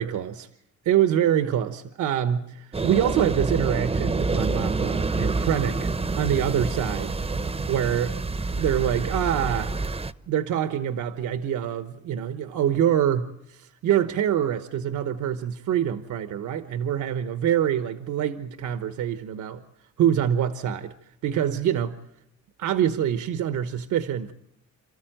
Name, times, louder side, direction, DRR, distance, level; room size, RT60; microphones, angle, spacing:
voice 1, 0.0-0.5 0.8-5.9 6.1-7.2 7.7-8.1 8.5-9.8 10.3-19.6 20.0-20.9 21.2-22.0 22.6-24.3, right 10 dB, 75° right, 10 dB, 1.1 m, -25 dB
sound 1, 2.7-10.1, right 3 dB, 20° right, 0.8 m, -27 dB
28.5 x 13.5 x 9.1 m, 0.77 s
cardioid pair, 90°, 30 cm